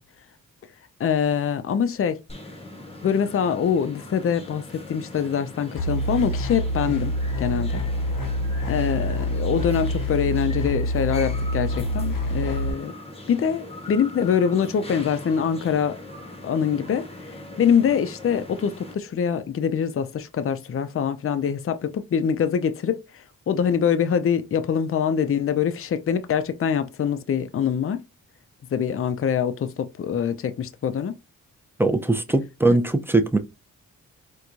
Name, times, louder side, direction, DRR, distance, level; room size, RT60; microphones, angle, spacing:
voice 1, 1.0-2.2 3.0-7.1 7.4-7.8 8.7-12.9 13.3-16.0 16.4-28.0 28.7-31.2 32.7-32.8, left 7 dB, 45° left, 0.5 m, -24 dB
sound 1, 2.3-18.9, left 1 dB, 20° left, 0.8 m, -41 dB
sound 2, 5.7-12.7, equal, 75° left, 0.8 m, -26 dB
voice 2, 31.8-33.4, right 2 dB, 5° right, 0.5 m, -20 dB
4.5 x 2.2 x 2.5 m
cardioid pair, 65°, 32 cm